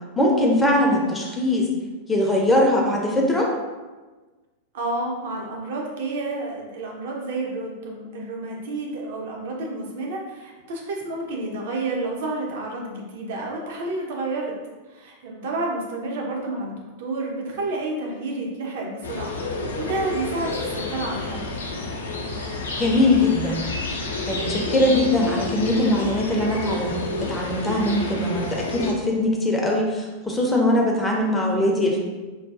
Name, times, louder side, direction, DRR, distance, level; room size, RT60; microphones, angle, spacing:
voice 1, 0.2-1.7 2.1-3.5 22.8-23.6 24.3-32.0, left 1 dB, 10° left, -1 dB, 0.5 m, -21 dB
voice 2, 4.7-14.6 14.9-21.6, right 2 dB, 55° right, -1 dB, 0.6 m, -30 dB
sound 1, 19.0-28.9, left 2 dB, 70° left, 0.4 m, -29 dB
3.9 x 2.2 x 2.4 m, 1.2 s
figure-of-eight pair, 90°, 0 cm